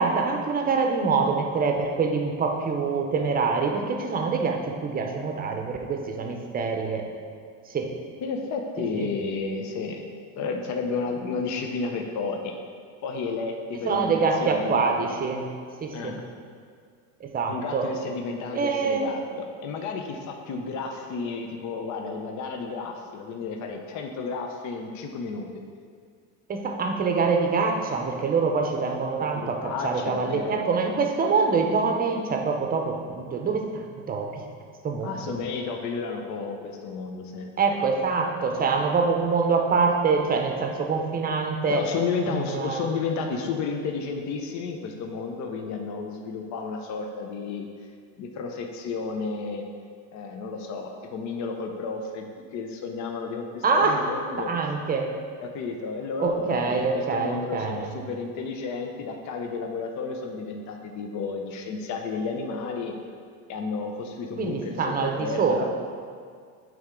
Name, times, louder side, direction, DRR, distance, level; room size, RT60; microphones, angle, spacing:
voice 1, 0.0-7.1 7.7-7.9 8.8-9.1 13.8-15.5 15.8-16.2 17.2-17.9 18.5-19.1 26.5-34.4 34.8-35.4 37.6-41.8 42.3-42.9 53.6-54.0 54.4-55.1 56.2-57.9 64.4-65.7, right 4 dB, 25° right, 2 dB, 0.7 m, -25 dB
voice 2, 8.2-10.1 10.4-12.6 13.0-14.9 15.9-16.2 17.5-25.5 29.3-30.6 35.0-37.6 41.7-47.7 48.2-49.6 50.1-54.5 55.4-62.9 63.5-65.6, left 4 dB, 50° left, 3 dB, 0.7 m, -32 dB
8.6 x 3.5 x 3.7 m, 2.1 s
supercardioid pair, 115°, 38 cm